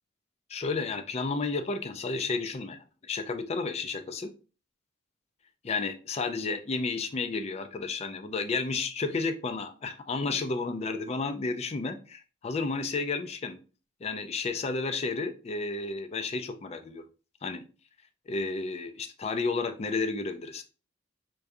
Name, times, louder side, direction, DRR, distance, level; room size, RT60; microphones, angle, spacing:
voice 1, 0.5-2.8 3.1-4.3 5.6-13.6 14.0-17.0 17.4-17.6 18.3-20.6, left 3 dB, 35° left, 8 dB, 0.4 m, -32 dB
4.6 x 2.3 x 2.5 m, 0.34 s
head